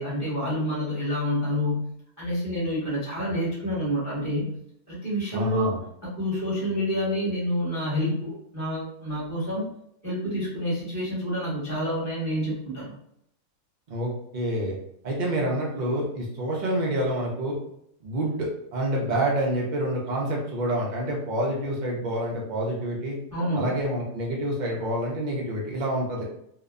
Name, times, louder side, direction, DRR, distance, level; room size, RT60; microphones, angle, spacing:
voice 1, 0.0-4.5 4.9-5.7 6.2-9.7 10.0-12.9 23.3-23.7, equal, 15° right, -9 dB, 0.9 m, -28 dB
voice 2, 5.3-5.8 13.9-14.8 15.0-17.6 18.0-23.2 23.6-26.2, right 1 dB, 80° right, -2 dB, 0.4 m, -27 dB
2.9 x 2.0 x 2.4 m, 0.73 s
omnidirectional pair, 1.5 m